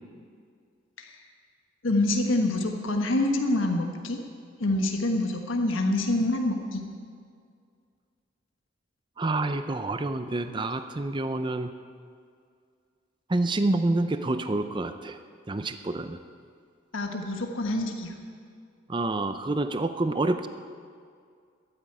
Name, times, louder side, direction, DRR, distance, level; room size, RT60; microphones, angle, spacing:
voice 1, 1.8-4.2 4.6-6.8 16.9-18.1, left 2 dB, 90° left, 3 dB, 1.4 m, -26 dB
voice 2, 9.2-11.7 13.3-15.2 15.5-16.2 18.9-20.5, right 2 dB, 25° right, 9 dB, 0.5 m, -28 dB
13.5 x 9.5 x 8.8 m, 2.2 s
head